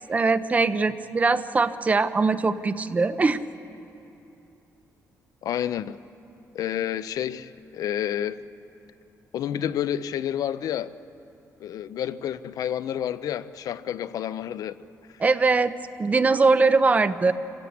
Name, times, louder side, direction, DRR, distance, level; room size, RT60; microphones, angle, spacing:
voice 1, 0.1-3.4 15.2-15.7 16.0-17.3, right 4 dB, 25° right, 0.7 m, -21 dB
voice 2, 5.4-6.0 6.5-8.4 9.3-10.9 11.6-14.7, left 10 dB, 75° left, 0.6 m, -29 dB
27.0 x 15.5 x 8.5 m
cardioid pair, 155°, 6 cm